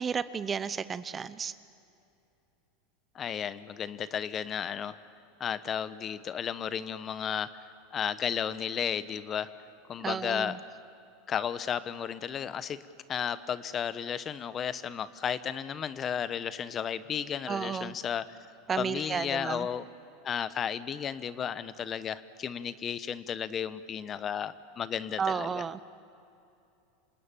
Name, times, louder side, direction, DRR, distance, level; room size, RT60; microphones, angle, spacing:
voice 1, 0.0-1.5 10.0-10.6 17.5-18.0 18.7-19.7 25.2-25.8, right 6 dB, 25° right, 15 dB, 0.8 m, -32 dB
voice 2, 3.1-5.0 5.4-7.6 7.9-9.5 9.9-10.6 11.3-12.8 13.1-18.4 18.8-19.8 20.2-25.6, left 8 dB, 35° left, 15 dB, 0.9 m, -33 dB
27.0 x 19.0 x 9.1 m, 2.7 s
hypercardioid pair, 105°, 0 cm